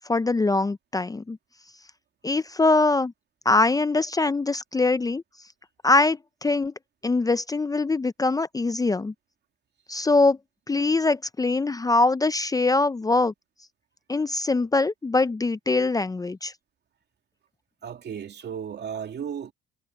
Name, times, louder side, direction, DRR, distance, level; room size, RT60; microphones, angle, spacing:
voice 1, 0.1-1.4 2.2-3.1 3.5-5.2 5.8-6.7 7.0-9.1 9.9-10.4 10.7-13.3 14.1-16.5, left 3 dB, 20° left, 0.6 m, -23 dB
voice 2, 17.8-19.5, right 8 dB, 60° right, 2.7 m, -34 dB
cardioid pair, 90°, 20 cm